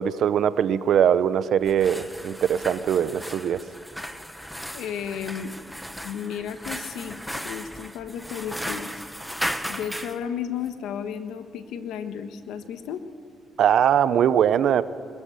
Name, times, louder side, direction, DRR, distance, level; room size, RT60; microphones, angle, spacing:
voice 1, 0.0-3.6 13.6-14.8, right 9 dB, 70° right, 15 dB, 0.8 m, -21 dB
sound 1, 1.6-10.2, equal, ahead, 1.2 m, -36 dB
voice 2, 4.7-5.5 6.0-7.2 7.4-8.9 9.7-13.0, left 8 dB, 85° left, 9 dB, 1.3 m, -33 dB
22.0 x 13.5 x 9.6 m, 2.2 s
cardioid pair, 90°, 0 cm